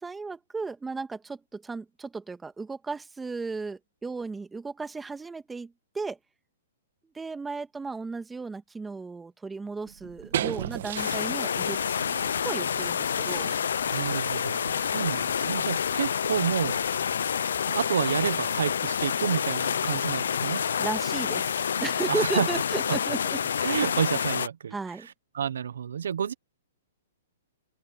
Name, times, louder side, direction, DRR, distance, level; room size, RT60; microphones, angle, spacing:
voice 1, 0.0-6.2 7.1-11.8 12.4-13.5 20.8-23.4 24.7-25.1, right 4 dB, 10° right, 1.8 m, -35 dB
sound 1, 9.9-17.9, right 11 dB, 65° right, 1.6 m, -39 dB
sound 2, 11.0-24.5, left 7 dB, 80° left, 0.6 m, -28 dB
voice 2, 13.9-16.8 17.1-17.2 17.7-20.6 22.1-22.5 22.9-23.0 23.6-24.7 25.3-26.3, right 8 dB, 80° right, 1.0 m, -29 dB
open air
hypercardioid pair, 140°, 0 cm